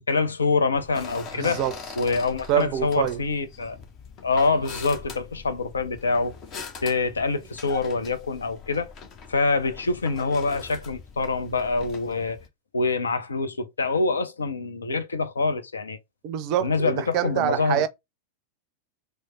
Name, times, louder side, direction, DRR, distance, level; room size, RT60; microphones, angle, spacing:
voice 1, 0.0-1.6 2.0-3.8 4.2-6.3 6.8-8.9 9.3-12.4 12.7-16.0 16.6-17.9, left 3 dB, 75° left, 0.5 m, -25 dB
sound 1, 0.7-12.5, left 5 dB, 35° left, 0.7 m, -42 dB
voice 2, 1.3-1.8 2.5-3.2 16.2-17.9, right 10 dB, 40° right, 0.4 m, -25 dB
3.2 x 2.0 x 3.8 m
figure-of-eight pair, 90°, 0 cm